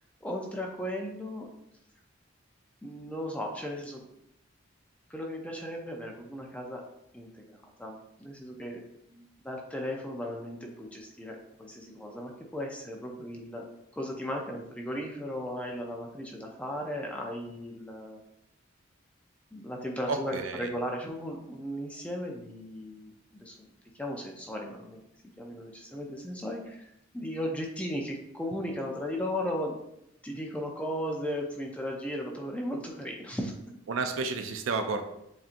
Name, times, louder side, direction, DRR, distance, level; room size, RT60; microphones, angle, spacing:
voice 1, 0.2-1.5 2.8-4.0 5.1-6.8 7.1-8.8 9.1-13.7 13.9-18.2 19.5-23.7 24.0-25.0 25.4-29.8 30.2-33.5, equal, 5° left, 1 dB, 0.5 m, -36 dB
voice 2, 20.1-20.7 33.9-35.0, right 4 dB, 80° right, 7 dB, 0.5 m, -31 dB
7.1 x 2.6 x 2.5 m, 0.82 s
head